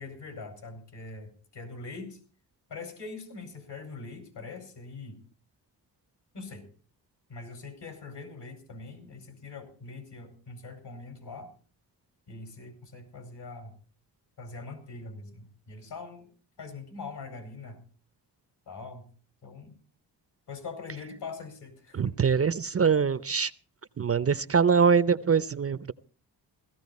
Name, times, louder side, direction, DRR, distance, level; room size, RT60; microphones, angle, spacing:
voice 1, 0.0-2.2 2.7-5.2 6.3-6.6 7.3-11.5 12.3-13.7 14.4-16.3 16.6-17.8 18.7-19.1 19.4-19.7 20.5-22.2, left 4 dB, 70° left, 7 dB, 5.1 m, -42 dB
voice 2, 21.9-23.5 24.0-25.9, right 6 dB, 35° right, 16 dB, 0.6 m, -23 dB
16.5 x 14.0 x 4.2 m, 0.39 s
cardioid pair, 60°, 43 cm